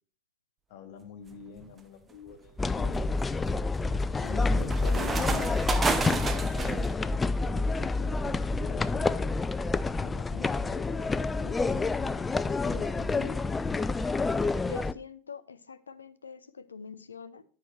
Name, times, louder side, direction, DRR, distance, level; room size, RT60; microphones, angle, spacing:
voice 1, 0.7-3.0 4.2-9.4 10.0-13.5, left 8 dB, 60° left, 0.9 m, -45 dB
sound 1, 1.3-1.7 2.3-6.9, right 4 dB, 20° right, 0.8 m, -32 dB
sound 2, 2.6-14.9, left 3 dB, 15° left, 0.3 m, -28 dB
voice 2, 14.7-17.4, left 5 dB, 85° left, 0.5 m, -44 dB
9.8 x 5.4 x 3.1 m
figure-of-eight pair, 80°, 0 cm